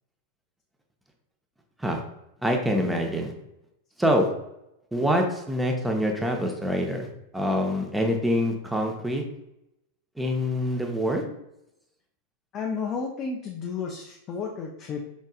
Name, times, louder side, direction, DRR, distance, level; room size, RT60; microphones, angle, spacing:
voice 1, 2.4-3.3 4.0-4.3 4.9-7.1 7.3-9.2 10.2-11.2, equal, 5° right, 2 dB, 0.8 m, -25 dB
voice 2, 12.5-15.0, left 5 dB, 30° left, 0 dB, 0.5 m, -32 dB
5.4 x 3.5 x 2.3 m, 0.84 s
figure-of-eight pair, 90°, 0 cm